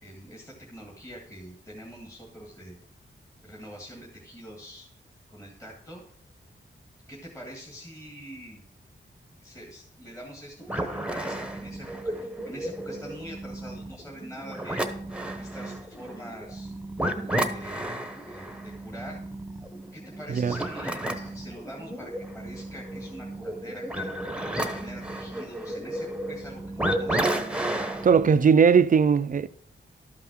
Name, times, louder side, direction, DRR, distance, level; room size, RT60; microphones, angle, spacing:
voice 1, 0.0-2.8 3.4-4.9 5.3-6.0 7.1-8.6 9.4-14.8 15.4-16.7 17.5-19.2 19.9-24.1 24.6-27.3, equal, 15° left, 1.8 m, -44 dB
sound 1, 10.6-28.3, right 1 dB, 5° right, 1.0 m, -33 dB
voice 2, 28.0-29.5, right 6 dB, 45° right, 0.4 m, -19 dB
12.5 x 5.7 x 6.2 m
wide cardioid pair, 165°, 19 cm